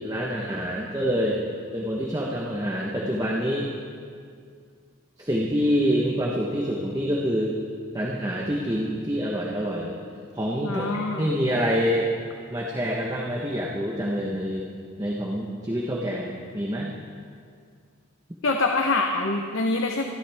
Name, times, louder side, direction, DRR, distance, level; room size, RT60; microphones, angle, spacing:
voice 1, 0.0-1.4 1.7-3.7 5.2-7.6 7.9-10.0 10.3-12.1 12.5-14.6 15.0-16.9, equal, 15° right, -3 dB, 1.2 m, -26 dB
voice 2, 10.6-11.3 18.4-20.0, left 3 dB, 70° left, 3 dB, 0.9 m, -25 dB
26.5 x 12.0 x 3.6 m, 2.2 s
head